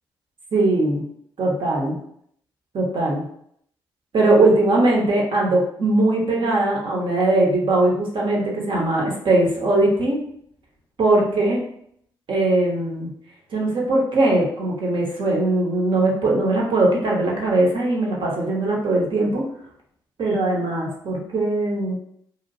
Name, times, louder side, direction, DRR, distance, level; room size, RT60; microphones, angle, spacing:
voice 1, 0.5-1.0 1.4-2.0 2.7-3.3 4.1-10.2 11.0-11.6 12.3-13.1 13.5-19.5 20.2-22.0, right 2 dB, 55° right, -2 dB, 1.1 m, -20 dB
2.9 x 2.4 x 2.6 m, 0.69 s
supercardioid pair, 50°, 10 cm